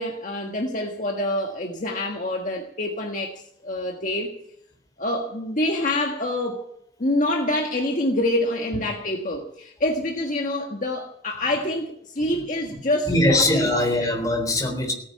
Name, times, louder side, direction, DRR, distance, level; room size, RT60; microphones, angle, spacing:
voice 1, 0.0-4.3 5.0-6.7 7.0-13.4 13.7-13.8, left 1 dB, 45° left, 1 dB, 1.6 m, -26 dB
voice 2, 13.1-14.9, left 1 dB, 20° left, 2 dB, 3.8 m, -21 dB
17.5 x 9.4 x 8.4 m, 0.70 s
head